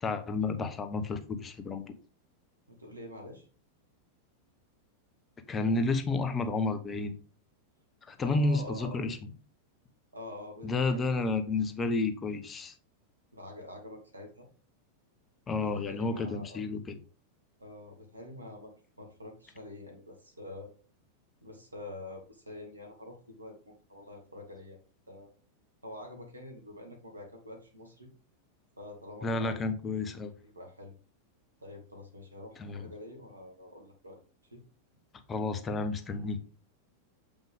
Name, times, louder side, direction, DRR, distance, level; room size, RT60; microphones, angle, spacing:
voice 1, 0.0-1.8 5.5-7.2 8.1-9.2 10.6-12.7 15.5-16.8 29.2-30.3 32.6-32.8 35.3-36.4, left 3 dB, 20° left, 9 dB, 0.9 m, -31 dB
voice 2, 2.7-3.5 8.2-9.1 10.1-11.3 13.3-14.5 15.6-16.6 17.6-18.7 19.0-20.7 21.4-24.8 25.1-25.3 25.8-28.1 28.8-29.6 30.4-30.9 31.6-34.2 34.5-34.6, left 1 dB, 80° right, 4 dB, 1.7 m, -46 dB
7.5 x 5.4 x 3.5 m, 0.38 s
figure-of-eight pair, 90°, 0 cm